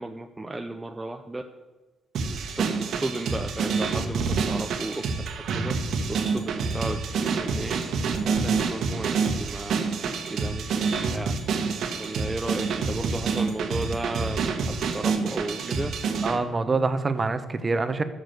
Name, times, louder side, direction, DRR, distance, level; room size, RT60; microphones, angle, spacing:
voice 1, 0.0-1.4 2.6-4.9 5.5-5.7 6.1-7.8 8.2-9.7 10.0-11.3 12.0-15.9, right 2 dB, 15° right, 4 dB, 0.7 m, -34 dB
sound 1, 2.1-16.4, right 5 dB, 70° right, 1.5 m, -27 dB
voice 2, 16.2-18.0, right 3 dB, 30° right, 10 dB, 1.1 m, -25 dB
13.5 x 6.4 x 7.9 m, 1.2 s
cardioid pair, 90°, 0 cm